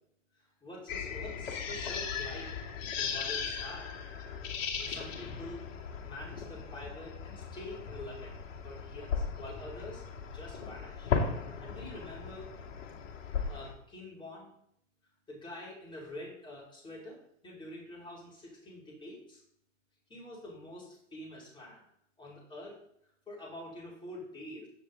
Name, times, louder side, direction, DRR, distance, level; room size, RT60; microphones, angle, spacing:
voice 1, 0.6-2.5 2.9-3.9 4.7-5.6 6.0-8.4 8.6-10.0 10.3-11.2 11.6-12.5 13.2-14.5 15.3-19.4 20.1-21.8 22.2-22.7 23.3-24.7, left 1 dB, 10° left, -5 dB, 5.1 m, -46 dB
sound 1, 0.9-13.7, left 6 dB, 45° left, 2.6 m, -37 dB
16.0 x 7.7 x 4.0 m, 0.71 s
hypercardioid pair, 120°, 39 cm